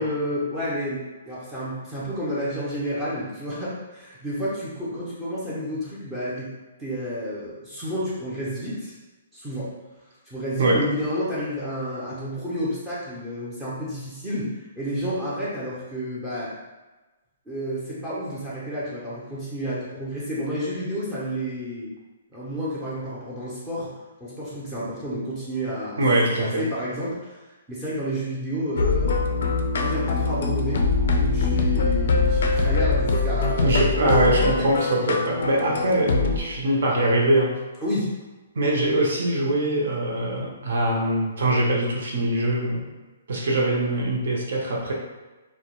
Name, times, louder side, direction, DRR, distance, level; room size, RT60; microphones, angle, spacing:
voice 1, 0.0-6.5 6.8-8.9 9.3-9.7 10.3-14.5 14.8-16.5 17.5-21.9 22.3-23.9 24.2-26.0 26.4-27.4 27.7-29.2 29.7-30.8 31.1-33.8 34.0-34.1 34.6-34.7 37.8-38.1, equal, 5° right, -10 dB, 0.5 m, -30 dB
voice 2, 26.0-26.6 33.6-37.6 38.5-42.9 43.3-44.9, right 1 dB, 65° right, -2 dB, 0.6 m, -22 dB
sound 1, 28.8-36.4, left 4 dB, 65° left, 0.3 m, -23 dB
2.2 x 2.1 x 2.9 m, 1.2 s
hypercardioid pair, 165°, 0 cm